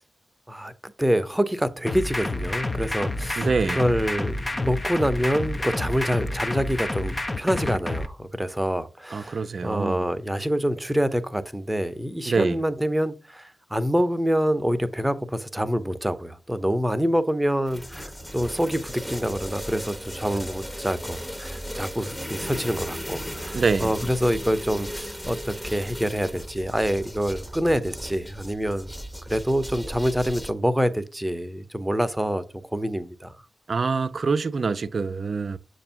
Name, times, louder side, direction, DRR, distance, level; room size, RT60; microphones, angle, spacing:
voice 1, 0.5-25.4 25.6-28.9 29.3-32.4 32.7-33.3, equal, 10° right, 0.7 m, -26 dB
sound 1, 1.9-8.1, left 2 dB, 30° left, 0.6 m, -29 dB
voice 2, 3.4-3.8 9.1-10.1 12.3-12.6 23.5-23.9 33.7-35.6, right 4 dB, 60° right, 0.4 m, -25 dB
sound 2, 17.7-30.5, equal, 10° left, 1.0 m, -36 dB
6.7 x 2.6 x 5.6 m
supercardioid pair, 40°, 0 cm